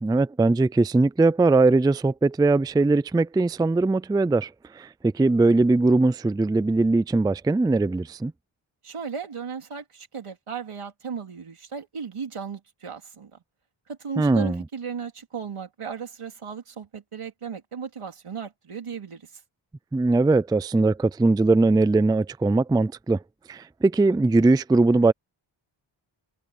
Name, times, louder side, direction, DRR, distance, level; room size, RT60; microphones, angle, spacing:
voice 1, 0.0-8.3 14.2-14.6 19.9-23.2 23.5-25.1, right 3 dB, 10° right, 0.3 m, -20 dB
voice 2, 8.8-13.3 13.9-19.4, right 6 dB, 85° right, 3.5 m, -36 dB
wide cardioid pair, 110°, 50 cm